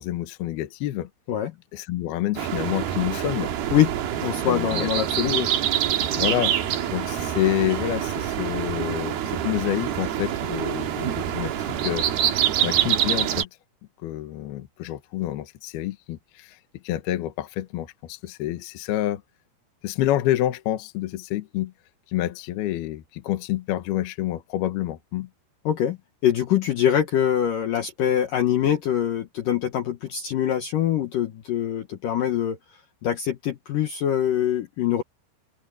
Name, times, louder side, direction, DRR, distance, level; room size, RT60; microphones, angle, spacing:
voice 1, 0.0-1.1 1.7-3.5 4.5-4.9 6.1-6.6 6.9-12.0 12.6-13.5 14.0-16.6 16.8-19.2 19.8-21.7 22.1-25.3, left 14 dB, 70° left, 2.6 m, -28 dB
sound 1, 2.4-13.4, right 10 dB, 60° right, 3.0 m, -26 dB
voice 2, 4.2-5.5 25.7-26.0 26.2-32.6 33.0-35.0, left 10 dB, 90° left, 1.9 m, -23 dB
omnidirectional pair, 5.8 m